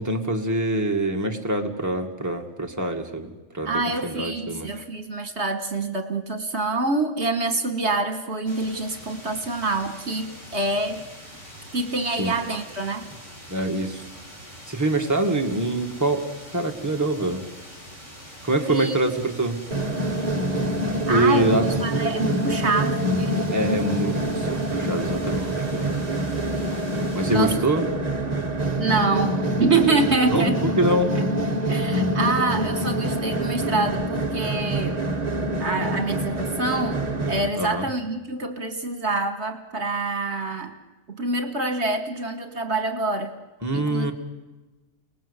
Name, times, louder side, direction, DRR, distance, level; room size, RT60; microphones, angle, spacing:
voice 1, 0.0-4.7 12.2-12.3 13.5-14.0 14.7-16.3 16.5-17.4 18.4-19.6 21.1-21.6 23.5-25.9 27.1-27.8 30.3-31.1 37.6-37.9 43.6-44.1, right 1 dB, 15° right, 2 dB, 2.0 m, -25 dB
voice 2, 3.7-11.0 11.7-13.0 18.7-19.0 21.1-21.5 21.8-23.4 27.3-27.6 28.8-30.7 31.2-31.3 31.7-35.0 35.6-40.8 41.1-43.3 43.7-44.1, right 3 dB, 60° right, 7 dB, 1.7 m, -26 dB
sound 1, 8.5-27.6, equal, 25° left, 5.7 m, -44 dB
sound 2, 19.7-37.5, right 1 dB, 35° right, 1.5 m, -26 dB
30.0 x 19.5 x 8.2 m, 1.2 s
omnidirectional pair, 1.3 m